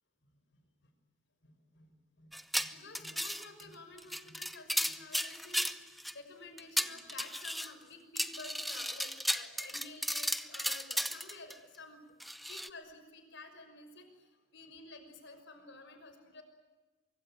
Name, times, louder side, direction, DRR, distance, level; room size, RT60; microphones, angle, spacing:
voice 1, 0.3-0.6 1.4-12.2 12.5-16.4, left 3 dB, 60° left, 6 dB, 5.9 m, -52 dB
sound 1, 2.3-3.6 4.0-6.1 6.6-7.7 8.2-11.5 12.2-12.7, equal, ahead, 0.8 m, -35 dB
24.5 x 24.0 x 9.1 m, 1.2 s
head